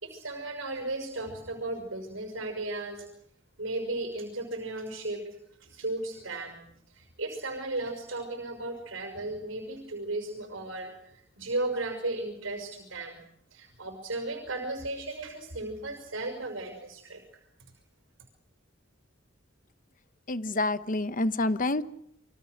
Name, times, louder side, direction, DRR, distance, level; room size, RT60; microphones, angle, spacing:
voice 1, 0.0-3.0 3.6-5.2 5.6-6.6 6.9-13.2 13.5-17.2, right 2 dB, 80° right, 4 dB, 6.1 m, -35 dB
voice 2, 20.3-21.8, left 2 dB, 45° left, 13 dB, 1.1 m, -28 dB
28.0 x 24.5 x 6.6 m, 0.73 s
head